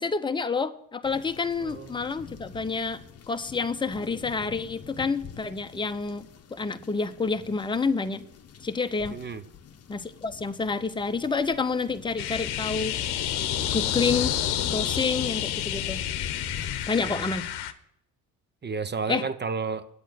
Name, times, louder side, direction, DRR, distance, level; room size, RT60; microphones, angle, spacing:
voice 1, 0.0-3.0 3.3-8.2 8.6-9.2 9.9-12.9 13.7-14.3 14.7-16.0 16.9-17.5 19.1-19.2, left 4 dB, 10° left, 9 dB, 0.7 m, -28 dB
sound 1, 1.0-16.9, left 7 dB, 40° left, 0.9 m, -45 dB
voice 2, 1.6-2.0 9.1-9.4 17.0-17.3 18.6-19.8, right 5 dB, 25° right, 12 dB, 0.8 m, -32 dB
sound 2, 12.2-17.7, left 11 dB, 75° left, 0.9 m, -29 dB
9.4 x 8.3 x 6.4 m, 0.74 s
supercardioid pair, 70°, 39 cm